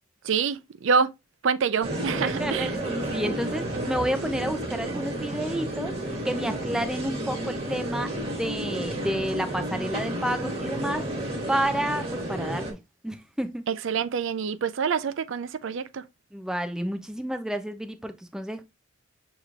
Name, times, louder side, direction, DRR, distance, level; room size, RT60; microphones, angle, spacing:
voice 1, 0.2-1.1 1.4-2.7 13.7-16.0, right 6 dB, 65° right, 0.4 m, -26 dB
sound 1, 1.8-12.7, right 1 dB, 30° right, 1.6 m, -31 dB
voice 2, 2.0-5.9 6.2-12.8 13.0-13.6 16.3-18.6, equal, 5° right, 0.4 m, -30 dB
6.5 x 3.0 x 2.3 m
head